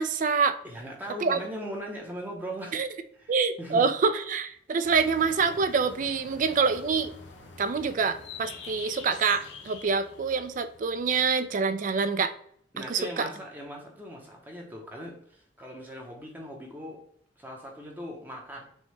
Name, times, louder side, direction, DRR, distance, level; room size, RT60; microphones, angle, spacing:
voice 1, 0.0-0.6 1.2-1.4 2.7-2.9 3.3-7.1 7.6-12.3 12.8-13.3, right 5 dB, 45° right, 11 dB, 0.3 m, -26 dB
voice 2, 0.6-2.8 3.1-4.0 12.7-17.0 17.4-18.7, equal, 10° right, 0 dB, 0.7 m, -39 dB
sound 1, 4.8-12.0, left 4 dB, 75° left, 0.8 m, -47 dB
6.3 x 2.1 x 3.2 m, 0.66 s
head